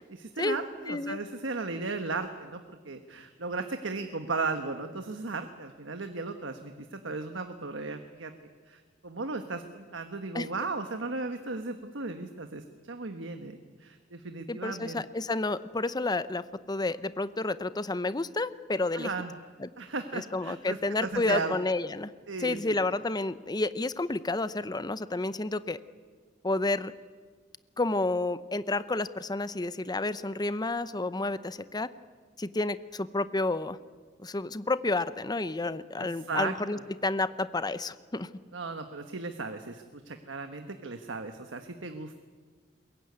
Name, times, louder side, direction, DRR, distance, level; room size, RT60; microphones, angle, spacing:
voice 1, 0.1-8.3 8.7-15.0 18.9-19.3 19.8-21.5 22.3-22.7 36.0-36.8 38.5-42.2, right 3 dB, 75° right, 7 dB, 1.3 m, -36 dB
voice 2, 0.9-1.2 10.3-10.5 14.5-19.1 19.6-19.7 20.1-22.1 22.4-25.8 26.4-26.9 27.8-31.9 32.4-33.8 34.2-38.3, left 2 dB, 20° left, 14 dB, 0.7 m, -30 dB
22.0 x 22.0 x 9.6 m, 1.5 s
head